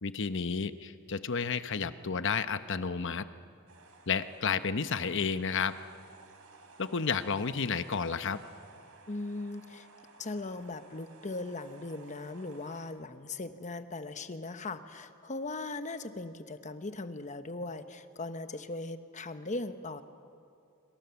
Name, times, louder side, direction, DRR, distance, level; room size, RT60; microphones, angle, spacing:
voice 1, 0.0-3.2 4.1-5.7 6.8-8.4, left 5 dB, 60° left, 11 dB, 0.9 m, -31 dB
sound 1, 3.7-12.9, right 3 dB, 80° right, 3.3 m, -56 dB
voice 2, 9.1-9.9 10.2-20.0, left 2 dB, 35° left, 9 dB, 1.0 m, -39 dB
28.0 x 25.5 x 7.1 m, 2.5 s
head